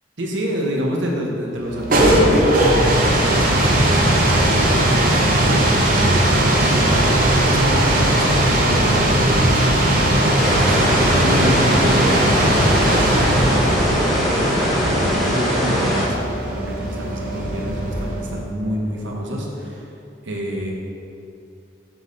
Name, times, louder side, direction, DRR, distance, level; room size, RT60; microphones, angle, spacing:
voice 1, 0.2-14.0 14.3-19.9 20.2-20.7, equal, 90° right, -1 dB, 1.1 m, -28 dB
sound 1, 1.6-18.3, right 1 dB, 50° right, 0.9 m, -18 dB
sound 2, 10.3-16.0, equal, ahead, 1.4 m, -21 dB
6.1 x 5.3 x 4.0 m, 2.7 s
head